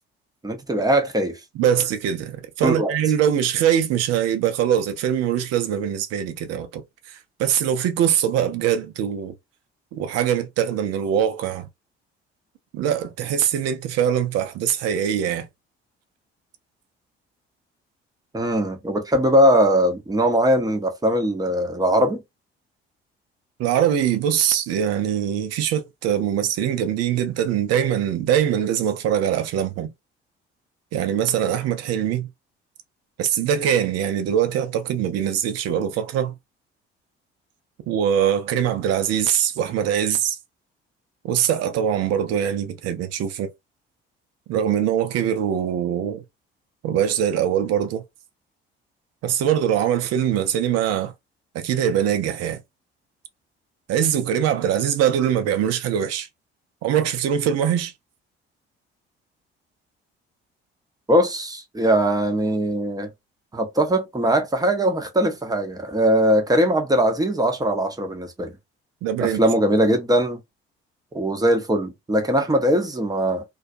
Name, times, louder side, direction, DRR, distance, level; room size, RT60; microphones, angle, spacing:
voice 1, 0.4-1.4 2.6-2.9 18.3-22.2 61.1-63.1 63.5-68.5 69.2-70.4 71.1-73.4, right 1 dB, 10° right, 0.8 m, -20 dB
voice 2, 1.6-6.8 7.1-9.3 9.9-11.7 12.7-15.5 23.6-29.9 30.9-32.3 33.2-36.3 37.9-40.4 41.2-43.5 44.5-46.2 46.8-48.0 49.2-51.1 51.5-52.6 53.9-56.3 56.8-57.9 69.0-69.4, right 9 dB, 50° right, 0.6 m, -22 dB
2.3 x 2.3 x 2.5 m
figure-of-eight pair, 50°, 31 cm